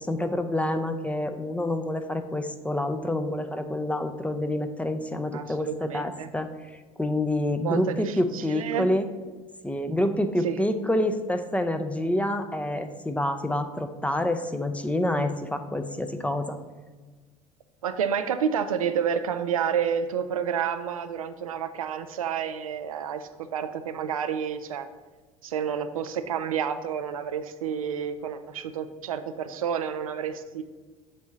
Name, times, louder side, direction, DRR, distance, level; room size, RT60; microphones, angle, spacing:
voice 1, 0.0-6.5 7.0-9.0 9.6-16.6, left 1 dB, 5° left, 8 dB, 0.5 m, -27 dB
voice 2, 5.3-6.3 7.6-8.9 10.4-10.6 17.8-24.9 25.4-30.6, right 7 dB, 85° right, 9 dB, 0.4 m, -29 dB
7.3 x 2.7 x 5.8 m, 1.3 s
figure-of-eight pair, 65°, 17 cm